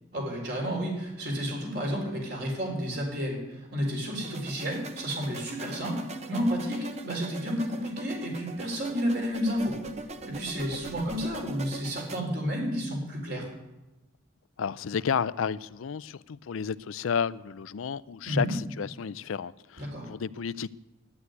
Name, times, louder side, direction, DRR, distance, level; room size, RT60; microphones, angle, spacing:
voice 1, 0.1-9.8 10.2-13.5 18.2-18.5 19.8-20.1, equal, 50° right, 4.4 m, -31 dB
sound 1, 4.2-12.2, right 3 dB, 30° right, 0.9 m, -42 dB
voice 2, 14.6-20.7, left 6 dB, 85° left, 0.4 m, -32 dB
11.5 x 9.8 x 9.7 m
head